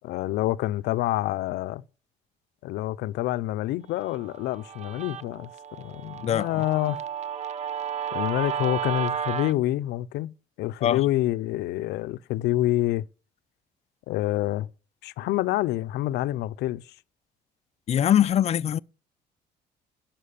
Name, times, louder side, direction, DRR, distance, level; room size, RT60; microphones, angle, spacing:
voice 1, 0.0-1.8 2.6-7.0 8.1-13.0 14.1-14.7 15.0-16.8, left 15 dB, 80° left, 0.6 m, -27 dB
Guitar, 4.0-9.5, right 8 dB, 45° right, 0.7 m, -33 dB
voice 2, 17.9-18.8, left 10 dB, 40° left, 0.4 m, -22 dB
11.5 x 5.9 x 7.0 m
cardioid pair, 110°, 17 cm